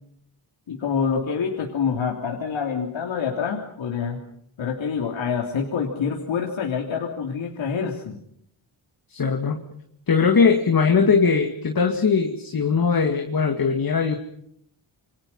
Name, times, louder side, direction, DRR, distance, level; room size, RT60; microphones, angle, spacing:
voice 1, 0.7-4.2 4.6-8.2, left 6 dB, 75° left, 0 dB, 3.3 m, -26 dB
voice 2, 9.1-9.6 10.1-14.2, left 5 dB, 45° left, 3 dB, 2.5 m, -20 dB
28.5 x 24.5 x 5.7 m, 0.72 s
wide cardioid pair, 125°, 47 cm